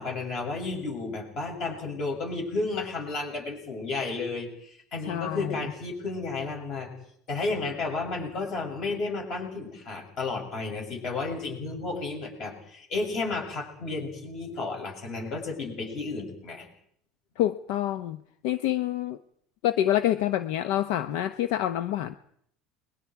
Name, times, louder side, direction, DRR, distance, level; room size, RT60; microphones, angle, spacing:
voice 1, 0.0-6.9 7.3-16.7, left 3 dB, 35° left, 1 dB, 7.6 m, -32 dB
voice 2, 5.1-5.6 17.4-19.2 19.6-22.2, left 12 dB, 70° left, 12 dB, 0.8 m, -27 dB
30.0 x 22.5 x 4.8 m, 0.68 s
cardioid pair, 170°, 0 cm